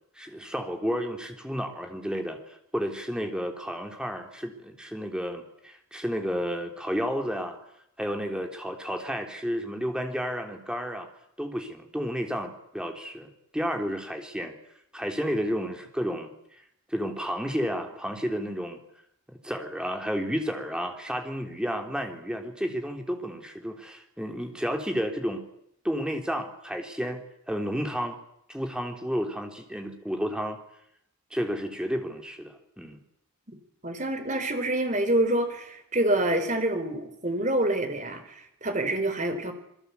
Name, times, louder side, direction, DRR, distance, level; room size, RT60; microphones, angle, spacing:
voice 1, 0.2-7.6 8.0-11.1 11.4-14.6 14.9-16.6 16.9-18.8 19.3-25.4 25.8-27.2 27.5-28.2 28.5-30.6 31.3-33.0, equal, 5° right, 4 dB, 3.3 m, -31 dB
voice 2, 33.8-39.5, right 1 dB, 35° right, 7 dB, 4.4 m, -27 dB
27.5 x 22.0 x 8.3 m, 0.75 s
head